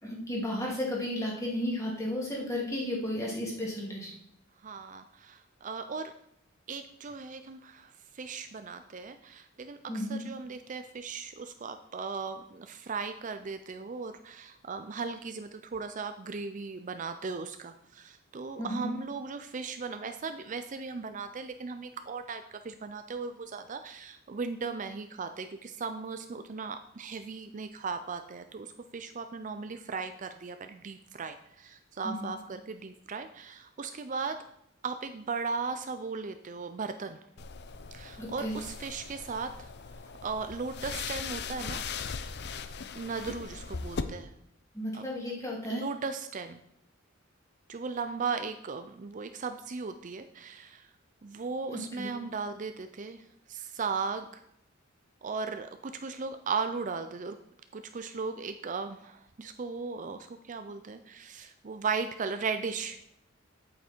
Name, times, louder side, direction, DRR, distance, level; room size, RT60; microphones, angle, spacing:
voice 1, 0.0-4.1 9.9-10.2 18.6-19.0 32.0-32.4 38.2-38.6 44.7-45.8 51.7-52.2, left 1 dB, 15° left, -3 dB, 2.7 m, -34 dB
voice 2, 4.6-6.1 6.7-34.4 34.8-37.2 37.9-41.8 42.9-44.3 44.9-45.1 45.7-46.6 47.7-50.9 51.2-54.4 55.2-57.4 57.7-63.0, right 4 dB, 40° right, 8 dB, 0.5 m, -37 dB
sound 1, 37.4-44.0, left 5 dB, 55° left, 0.6 m, -39 dB
8.7 x 8.4 x 4.5 m, 0.77 s
head